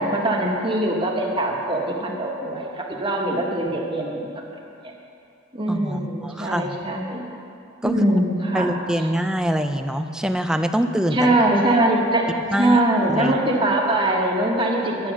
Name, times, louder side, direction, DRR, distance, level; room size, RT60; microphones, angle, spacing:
voice 1, 0.0-4.3 4.8-4.9 5.5-7.3 7.8-8.8 11.1-12.2 12.6-15.1, right 1 dB, 25° right, -1 dB, 1.3 m, -22 dB
voice 2, 5.7-6.8 7.8-7.9 8.5-11.4 12.5-12.8 13.1-13.3, equal, 5° right, 7 dB, 0.4 m, -24 dB
10.0 x 8.4 x 6.2 m, 2.6 s
head